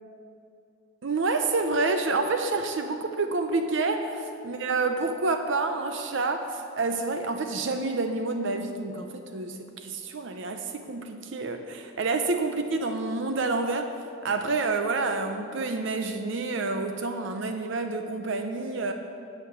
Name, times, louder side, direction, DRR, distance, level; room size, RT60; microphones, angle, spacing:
voice 1, 1.0-13.9 14.2-18.9, right 3 dB, 60° right, 6 dB, 0.5 m, -28 dB
9.5 x 6.6 x 6.9 m, 2.7 s
head